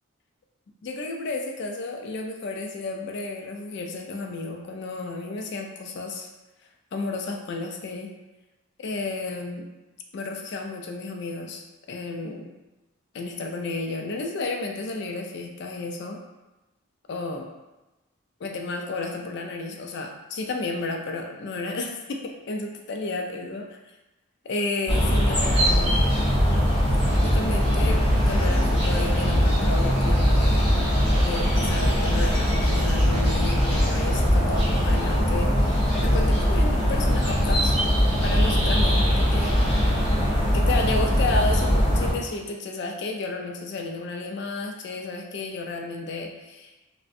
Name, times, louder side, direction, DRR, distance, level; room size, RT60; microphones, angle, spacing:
voice 1, 0.8-6.3 6.9-8.1 8.8-9.7 10.1-12.5 13.1-16.2 17.1-17.5 18.4-23.7 24.4-26.0 27.2-30.7 31.2-37.8 38.2-39.5 40.5-46.7, left 3 dB, 55° left, 2 dB, 0.3 m, -32 dB
sound 1, 24.9-42.1, equal, 5° right, 1.2 m, -21 dB
2.4 x 2.1 x 2.5 m, 1.0 s
head